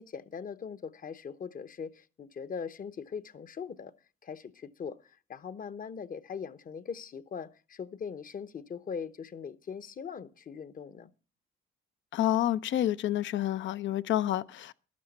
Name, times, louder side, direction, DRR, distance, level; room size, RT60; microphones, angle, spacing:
voice 1, 0.0-3.9 4.2-11.1, left 6 dB, 45° left, 0.9 m, -41 dB
voice 2, 12.1-14.8, left 12 dB, 70° left, 0.6 m, -29 dB
14.0 x 12.0 x 4.2 m
cardioid pair, 90°, 20 cm